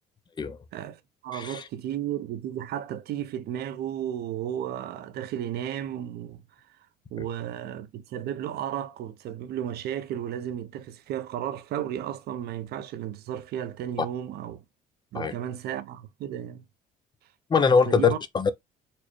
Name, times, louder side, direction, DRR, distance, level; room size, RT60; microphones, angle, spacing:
voice 1, 0.7-6.8 7.1-14.6 15.1-16.6 17.9-18.2, right 10 dB, 70° right, 0.6 m, -34 dB
voice 2, 1.3-1.6 15.1-15.3 17.5-18.5, left 5 dB, 25° left, 0.5 m, -22 dB
4.2 x 2.2 x 3.0 m
cardioid pair, 110°, 17 cm